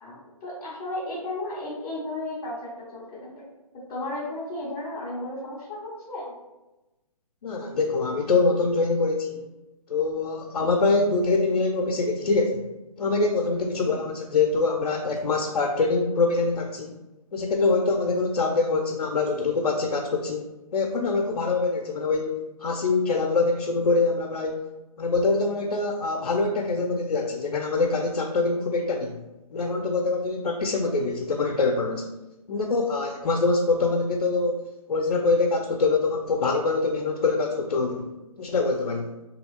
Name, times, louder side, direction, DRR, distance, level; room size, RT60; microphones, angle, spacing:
voice 1, 0.0-3.4 3.9-6.3 13.7-14.0, left 1 dB, 5° left, -11 dB, 0.3 m, -34 dB
voice 2, 7.4-9.4 9.9-12.6 13.0-17.0 17.3-20.5 20.7-24.6 25.0-29.2 29.5-32.0 32.5-34.6 34.9-38.1 38.4-39.1, left 3 dB, 75° left, 1 dB, 0.4 m, -24 dB
2.8 x 2.7 x 2.8 m, 1.0 s
figure-of-eight pair, 145°, 19 cm